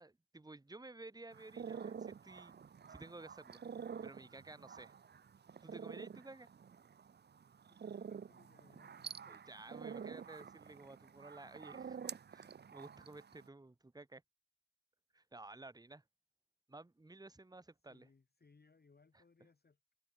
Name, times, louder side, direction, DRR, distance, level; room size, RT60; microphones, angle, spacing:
voice 1, 0.0-2.6 2.9-3.6 4.0-4.9 5.6-6.5 9.3-14.2 15.1-16.0 16.7-18.1, right 2 dB, 15° right, 1.2 m, -54 dB
sound 1, 1.3-13.5, right 7 dB, 35° right, 0.6 m, -49 dB
voice 2, 7.7-9.2 17.9-19.8, left 4 dB, 35° left, 1.6 m, -68 dB
cardioid pair, 85°, 29 cm